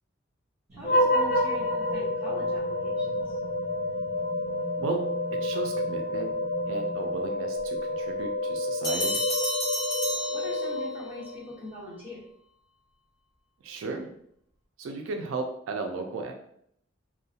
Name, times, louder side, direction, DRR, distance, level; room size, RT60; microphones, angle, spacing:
voice 1, 0.7-3.4 10.3-12.2, left 1 dB, 10° right, -9 dB, 1.1 m, -42 dB
sound 1, 0.7-7.4, right 3 dB, 30° right, 1.3 m, -44 dB
sound 2, 0.8-11.4, left 1 dB, 45° left, 0.4 m, -29 dB
voice 2, 5.4-6.3 6.7-9.2 13.6-14.1 14.8-16.3, right 3 dB, 85° right, 4 dB, 0.3 m, -34 dB
sound 3, 8.8-11.1, equal, 20° left, 0.8 m, -31 dB
2.3 x 2.1 x 2.7 m, 0.69 s
head